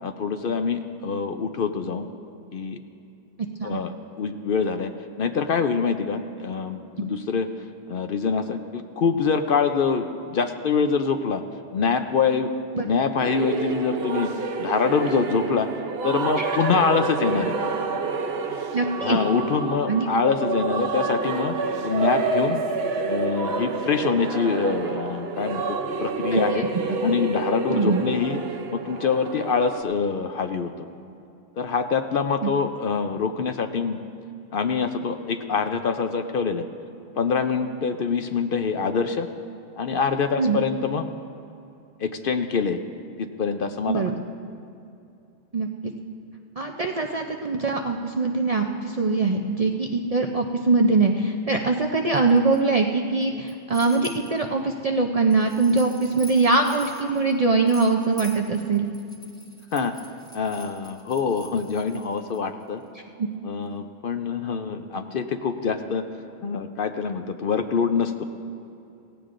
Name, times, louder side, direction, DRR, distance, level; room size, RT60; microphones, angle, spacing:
voice 1, 0.0-2.1 2.5-2.8 3.6-4.9 5.2-7.5 7.9-11.4 11.7-12.5 12.8-14.3 14.6-15.7 16.0-17.8 19.0-21.5 21.8-22.6 23.1-26.7 27.0-28.4 28.7-30.9 31.6-34.0 34.5-36.7 37.2-39.3 39.8-41.1 42.0-42.8 43.2-44.1 59.7-59.9 60.3-62.8 63.4-66.0 66.4-68.2, left 5 dB, 60° left, 7 dB, 0.7 m, -25 dB
sound 1, 13.2-29.8, right 4 dB, 65° right, 0.9 m, -28 dB
voice 2, 18.7-19.2 19.9-20.1 26.3-26.7 27.7-28.0 32.4-32.5 40.4-40.6 43.9-44.2 45.5-45.9 46.6-58.9 63.2-63.3, right 3 dB, 45° right, 2 dB, 0.5 m, -22 dB
sound 2, 52.2-52.6 53.2-54.4 55.3-62.4, left 1 dB, 5° left, 1.2 m, -46 dB
17.5 x 16.0 x 2.5 m, 2.6 s
omnidirectional pair, 1.2 m